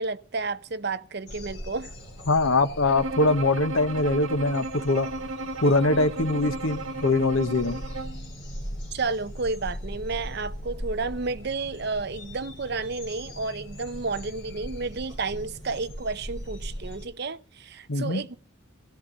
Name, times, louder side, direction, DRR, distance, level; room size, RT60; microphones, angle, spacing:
voice 1, 0.0-1.9 8.9-18.4, right 3 dB, 50° right, 0.7 m, -31 dB
sound 1, 1.3-17.1, equal, 55° left, 4.6 m, -40 dB
voice 2, 2.3-5.1 5.6-7.8 17.9-18.2, left 2 dB, 75° left, 1.1 m, -23 dB
Bowed string instrument, 2.9-8.3, right 2 dB, 80° right, 1.6 m, -34 dB
17.0 x 13.0 x 4.0 m
head